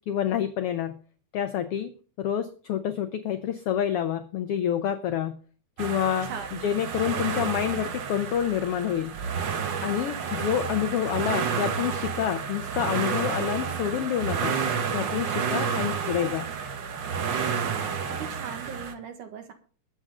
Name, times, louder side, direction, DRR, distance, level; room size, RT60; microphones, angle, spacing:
voice 1, 0.1-1.0 1.3-1.9 2.2-5.4 5.8-6.3 6.6-9.1 9.8-14.6 14.9-16.5, left 10 dB, 70° left, 8 dB, 1.4 m, -28 dB
sound 1, 5.8-18.9, right 6 dB, 60° right, 1.2 m, -30 dB
voice 2, 6.2-6.7 17.7-19.5, right 7 dB, 80° right, 6 dB, 3.1 m, -40 dB
21.0 x 8.0 x 3.7 m, 0.41 s
omnidirectional pair, 3.5 m